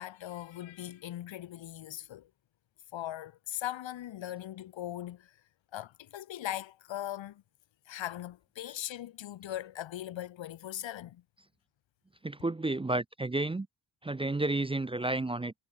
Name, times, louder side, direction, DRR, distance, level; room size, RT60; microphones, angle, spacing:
voice 1, 0.0-2.3 2.9-5.4 5.7-7.4 7.9-11.2, left 12 dB, 90° left, 1.2 m, -40 dB
voice 2, 12.2-13.7 14.0-15.5, right 2 dB, 15° right, 0.5 m, -31 dB
wide cardioid pair, 175°, 44 cm